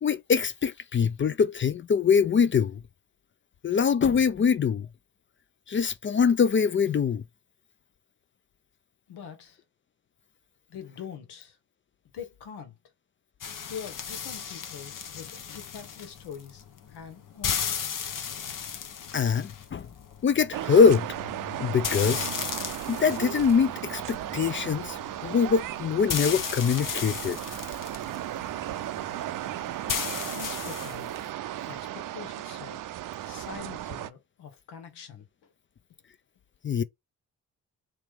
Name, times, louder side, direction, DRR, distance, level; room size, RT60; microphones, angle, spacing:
voice 1, 0.0-2.8 3.6-4.9 5.7-7.2 19.1-19.9 20.2-21.1 21.6-22.3 22.9-27.4 36.6-36.8, left 6 dB, 30° left, 0.4 m, -23 dB
voice 2, 9.1-9.6 10.7-11.6 12.1-12.8 13.6-17.9 30.3-31.2 31.6-32.9 33.2-35.5, left 7 dB, 80° left, 1.2 m, -44 dB
sound 1, 13.4-31.3, left 7 dB, 55° left, 0.9 m, -36 dB
sound 2, 20.5-34.1, right 13 dB, 55° right, 0.5 m, -36 dB
3.1 x 3.0 x 3.5 m
supercardioid pair, 50°, 39 cm